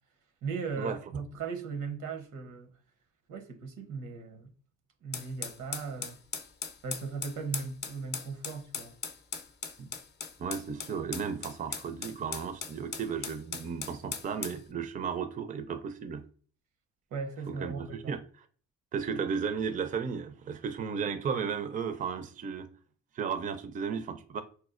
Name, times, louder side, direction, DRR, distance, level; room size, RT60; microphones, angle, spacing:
voice 1, 0.4-2.7 3.3-4.5 5.0-6.2 6.8-8.9 17.1-18.2, right 5 dB, 80° right, 0.8 m, -38 dB
sound 1, 5.1-14.6, left 6 dB, 35° left, 0.5 m, -39 dB
voice 2, 10.4-16.2 17.5-18.2 18.9-22.7 23.1-24.4, right 6 dB, 30° right, 0.4 m, -34 dB
4.1 x 2.3 x 2.4 m
cardioid pair, 90°, 30 cm